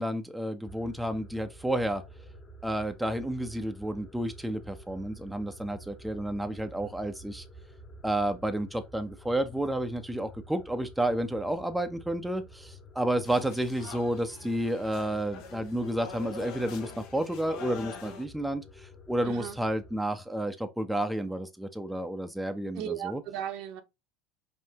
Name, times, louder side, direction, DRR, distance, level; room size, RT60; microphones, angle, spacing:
voice 1, 0.0-2.0 2.6-7.4 8.0-23.2, right 1 dB, 5° right, 0.5 m, -31 dB
sound 1, 0.7-20.0, equal, 25° left, 1.0 m, -50 dB
sound 2, 13.2-18.2, left 5 dB, 65° left, 0.9 m, -44 dB
voice 2, 19.2-19.6 22.7-23.8, right 10 dB, 65° right, 0.8 m, -36 dB
5.2 x 2.7 x 2.8 m
supercardioid pair, 95°, 0 cm